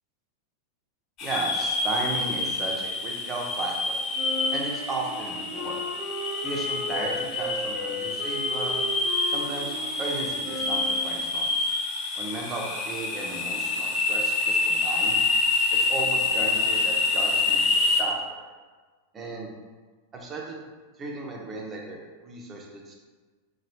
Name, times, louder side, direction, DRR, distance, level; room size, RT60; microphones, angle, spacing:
sound 1, 1.2-18.0, left 3 dB, 35° left, 0.4 m, -27 dB
voice 1, 1.2-4.0 4.5-5.8 6.4-8.7 9.3-11.7 12.2-15.2 15.7-18.4 19.1-19.5 20.1-20.6 21.0-23.0, right 3 dB, 25° right, -1 dB, 0.5 m, -35 dB
Wind instrument woodwind instrument, 4.1-11.3, left 2 dB, 15° left, 0.8 m, -36 dB
2.9 x 2.2 x 3.1 m, 1.4 s
figure-of-eight pair, 90°, 0 cm